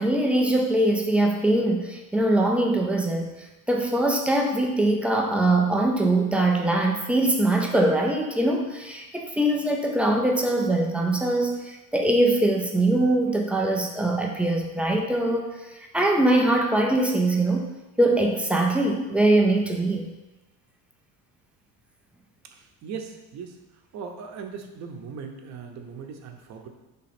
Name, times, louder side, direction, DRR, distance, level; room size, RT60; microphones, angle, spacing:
voice 1, 0.0-3.3 3.7-15.5 15.9-17.7 18.0-20.1, right 1 dB, 5° right, 0 dB, 0.3 m, -22 dB
voice 2, 22.5-23.6 23.9-26.7, right 6 dB, 45° right, 4 dB, 0.8 m, -39 dB
5.1 x 3.7 x 5.8 m, 1.0 s
cardioid pair, 160°, 40 cm